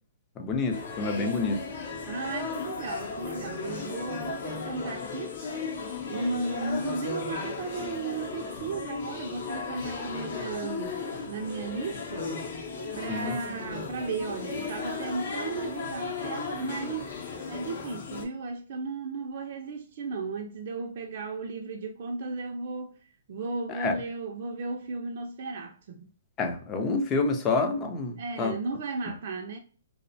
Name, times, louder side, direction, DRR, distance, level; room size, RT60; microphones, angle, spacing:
voice 1, 0.4-1.6 13.1-13.4 23.7-23.9 26.4-28.5, left 3 dB, 20° left, 0.4 m, -28 dB
sound 1, 0.7-18.2, left 4 dB, 55° left, 0.7 m, -36 dB
voice 2, 2.1-5.3 6.1-12.3 13.0-17.2 17.5-22.9 23.3-26.1 28.2-29.6, right 3 dB, 50° right, 0.3 m, -35 dB
2.5 x 2.0 x 2.5 m
hypercardioid pair, 155°, 0 cm